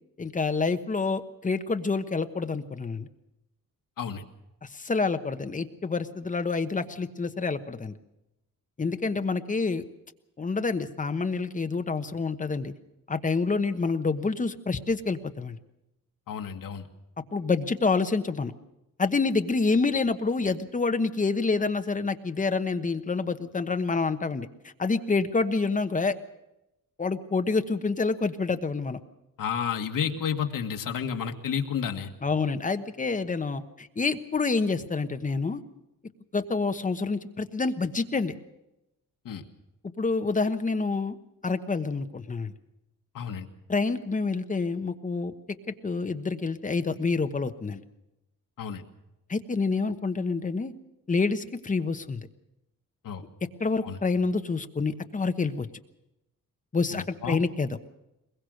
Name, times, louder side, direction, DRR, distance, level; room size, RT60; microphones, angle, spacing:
voice 1, 0.2-3.1 4.6-8.0 8.8-9.8 10.4-12.7 13.1-15.6 17.3-18.5 19.0-24.5 24.8-26.2 27.0-29.0 32.2-35.6 36.3-38.3 40.0-41.2 41.4-42.5 43.7-45.3 45.8-47.8 49.3-50.7 51.1-52.2 53.6-55.7 56.7-57.8, left 4 dB, 25° left, 9 dB, 1.1 m, -27 dB
voice 2, 16.3-16.9 29.4-32.1 39.3-39.4 43.1-43.5 48.6-48.8 53.0-53.2 53.8-54.0 56.9-57.4, left 7 dB, 75° left, 4 dB, 2.0 m, -31 dB
22.0 x 21.5 x 6.5 m, 0.91 s
wide cardioid pair, 155°, 33 cm